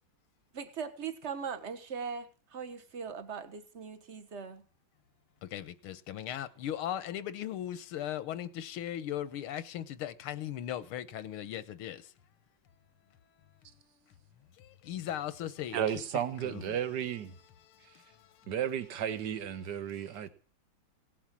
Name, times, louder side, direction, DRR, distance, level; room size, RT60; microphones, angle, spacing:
voice 1, 0.5-4.6, right 6 dB, 40° right, 1.3 m, -40 dB
voice 2, 5.5-12.0 14.8-15.8 16.1-16.8, left 11 dB, 90° left, 1.8 m, -38 dB
voice 3, 15.7-17.3 18.5-20.3, right 9 dB, 55° right, 1.7 m, -33 dB
17.5 x 7.3 x 7.3 m
omnidirectional pair, 2.3 m